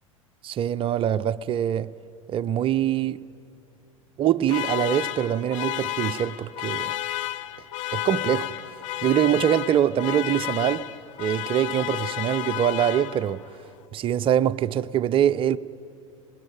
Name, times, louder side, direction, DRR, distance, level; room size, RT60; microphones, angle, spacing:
voice 1, 0.4-1.9 2.3-3.2 4.2-6.9 7.9-10.8 11.2-13.4 13.9-15.6, right 10 dB, 30° right, 0.5 m, -24 dB
sound 1, 4.5-13.5, left 15 dB, 65° left, 0.8 m, -32 dB
20.5 x 18.5 x 9.2 m
figure-of-eight pair, 85°, 17 cm